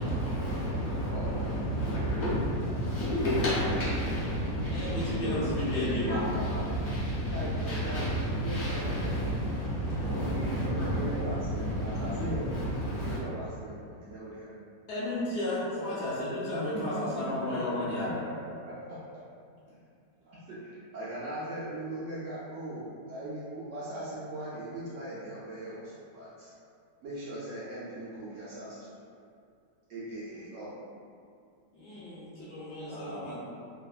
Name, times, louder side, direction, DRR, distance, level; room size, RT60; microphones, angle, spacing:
voice 1, 0.0-13.2, equal, 55° left, -9 dB, 0.8 m, -31 dB
voice 2, 2.0-2.8 4.8-5.4 5.8-6.8 7.1-9.1 10.1-14.5 15.0-15.2 16.5-17.2 18.7-19.0 19.7-19.8 20.2-26.5 27.0-29.0 29.9-31.0 32.9-33.4, right 1 dB, 80° right, -9 dB, 0.6 m, -39 dB
voice 3, 4.7-6.3 14.9-18.2 31.7-33.4, left 1 dB, 75° left, -10 dB, 1.2 m, -33 dB
3.2 x 2.0 x 2.3 m, 2.4 s
omnidirectional pair, 1.9 m